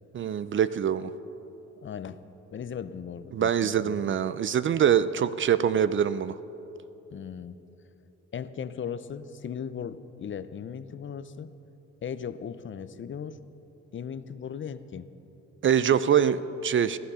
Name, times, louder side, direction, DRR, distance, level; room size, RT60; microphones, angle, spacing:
voice 1, 0.1-1.1 3.3-6.3 15.6-17.0, right 8 dB, 40° right, 15 dB, 0.5 m, -24 dB
voice 2, 1.8-2.2 2.5-4.0 7.1-7.5 8.3-11.5 12.0-13.4 13.9-15.1, left 7 dB, 40° left, 13 dB, 0.6 m, -37 dB
15.5 x 11.5 x 5.6 m, 3.0 s
cardioid pair, 90°, 30 cm